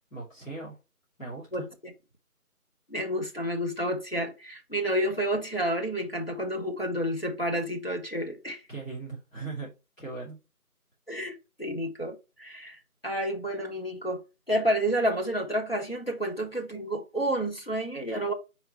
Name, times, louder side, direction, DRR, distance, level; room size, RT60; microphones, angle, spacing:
voice 1, 0.1-0.8 1.2-1.7 8.7-9.7 10.0-10.4, right 3 dB, 55° left, 2.7 m, -38 dB
voice 2, 2.9-8.6 11.1-12.8 13.0-18.3, equal, 40° left, 1.2 m, -30 dB
4.7 x 4.7 x 4.4 m
figure-of-eight pair, 180°, 45 cm